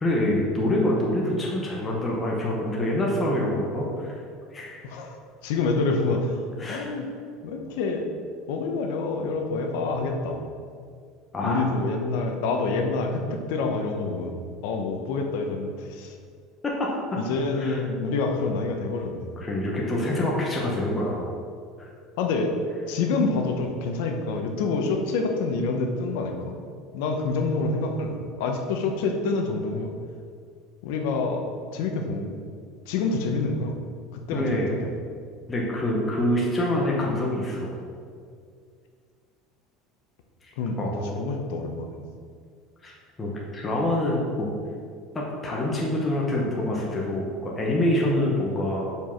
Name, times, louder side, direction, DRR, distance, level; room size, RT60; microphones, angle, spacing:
voice 1, 0.0-4.2 4.5-4.8 6.6-6.9 11.3-11.6 16.6-16.9 17.6-17.8 19.4-21.2 21.8-21.9 34.3-34.7 35.5-37.8 40.8-41.1 42.8-42.9 43.2-44.5 45.1-48.8, left 1 dB, 15° left, -3 dB, 1.0 m, -26 dB
voice 2, 4.8-5.1 5.4-6.4 6.7-7.1 7.4-8.1 8.5-10.4 11.4-16.1 17.2-19.4 20.0-20.2 22.2-22.5 22.9-26.6 26.9-29.9 30.8-31.5 31.7-32.3 32.9-33.7 34.1-34.9 40.6-42.0, left 3 dB, 75° left, 3 dB, 1.0 m, -27 dB
5.3 x 4.8 x 5.9 m, 2.2 s
cardioid pair, 165°, 0 cm